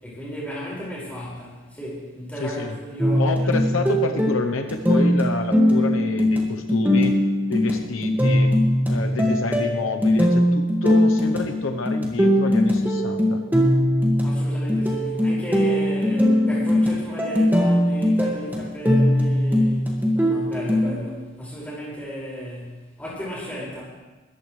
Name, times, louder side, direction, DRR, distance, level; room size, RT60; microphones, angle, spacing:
voice 1, 0.0-3.8 14.2-19.8 20.1-23.8, equal, 5° left, -7 dB, 5.5 m, -34 dB
voice 2, 2.4-2.8 3.2-7.2 7.5-8.5 8.9-13.4, left 3 dB, 80° left, 5 dB, 0.9 m, -28 dB
sound 1, 3.0-20.9, left 1 dB, 10° right, 1.9 m, -20 dB
21.5 x 14.0 x 3.3 m, 1.2 s
head